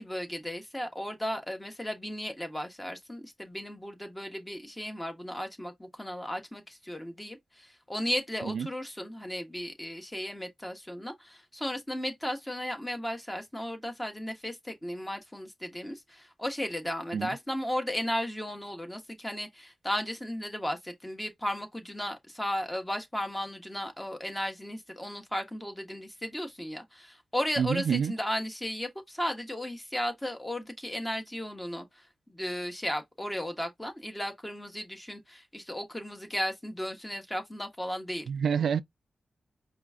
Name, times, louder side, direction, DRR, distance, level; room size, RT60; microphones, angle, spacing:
voice 1, 0.0-38.2, left 1 dB, 10° left, 1.1 m, -35 dB
voice 2, 27.6-28.1 38.3-38.8, right 7 dB, 85° right, 0.3 m, -27 dB
4.9 x 2.4 x 3.6 m
wide cardioid pair, 110°, 0 cm